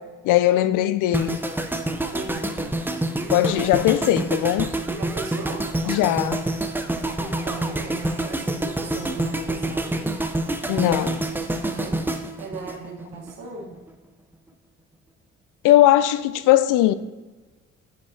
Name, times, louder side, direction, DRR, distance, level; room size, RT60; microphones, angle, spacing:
voice 1, 0.2-1.4 3.3-4.7 5.9-6.4 10.7-11.2 15.6-16.9, left 14 dB, 75° left, 0.5 m, -19 dB
sound 1, 1.1-13.3 13.6-13.9, right 1 dB, 5° right, 0.6 m, -27 dB
voice 2, 2.1-2.8 5.0-6.0 7.2-10.3 11.6-12.1 12.4-13.8, right 4 dB, 80° right, 1.4 m, -37 dB
7.3 x 6.7 x 2.8 m
supercardioid pair, 60°, 32 cm